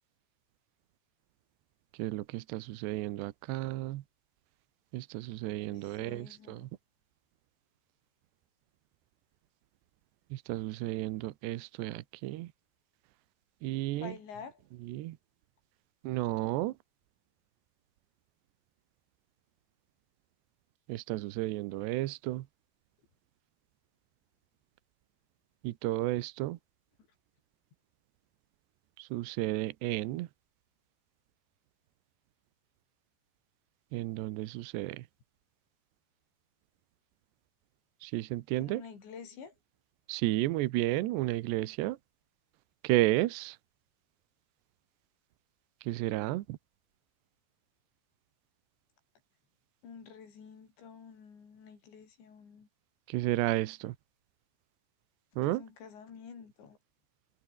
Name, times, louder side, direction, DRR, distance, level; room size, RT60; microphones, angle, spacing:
voice 1, 2.0-4.0 4.9-6.7 10.3-12.5 13.6-14.2 14.8-15.2 16.0-16.8 20.9-22.5 25.6-26.6 29.0-30.3 33.9-35.0 38.0-38.8 40.1-42.0 42.8-43.6 45.8-46.6 53.1-54.0 55.4-55.6, right 17 dB, 80° right, 3.1 m, -32 dB
voice 2, 5.7-6.7 14.0-14.6 38.6-39.5 49.8-52.7 55.4-56.8, left 6 dB, 80° left, 7.7 m, -49 dB
omnidirectional pair, 5.1 m